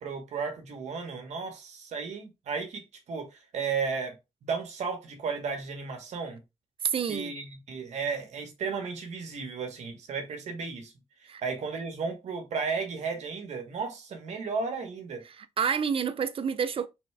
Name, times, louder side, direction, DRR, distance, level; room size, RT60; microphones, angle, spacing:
voice 1, 0.0-4.2 4.4-6.4 7.1-10.9 11.2-15.2, right 5 dB, 75° right, 1.4 m, -34 dB
voice 2, 6.8-7.3 11.3-11.4 15.4-16.9, right 7 dB, 50° right, 0.5 m, -28 dB
4.3 x 3.2 x 3.3 m
cardioid pair, 90°, 12 cm